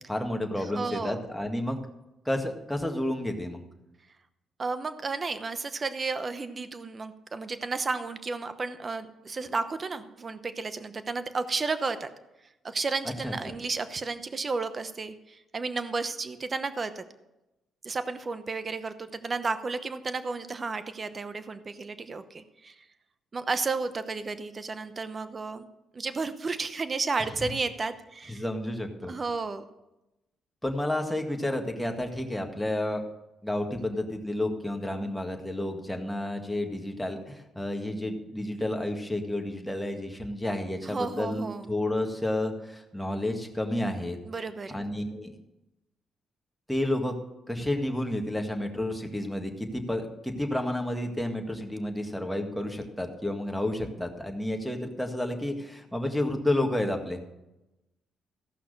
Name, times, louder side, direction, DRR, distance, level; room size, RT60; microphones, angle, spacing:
voice 1, 0.1-1.8 2.3-3.6 13.2-13.3 28.3-29.1 30.6-33.0 33.4-44.2 44.7-45.3 46.7-47.1 47.5-57.2, left 1 dB, ahead, 3 dB, 1.8 m, -31 dB
voice 2, 0.7-1.2 4.6-12.1 12.6-17.0 17.8-22.7 23.3-25.6 25.9-28.4 29.1-29.6 40.8-41.7 44.3-44.8, right 4 dB, 35° right, 11 dB, 0.9 m, -32 dB
15.0 x 5.8 x 6.6 m, 0.95 s
cardioid pair, 90°, 0 cm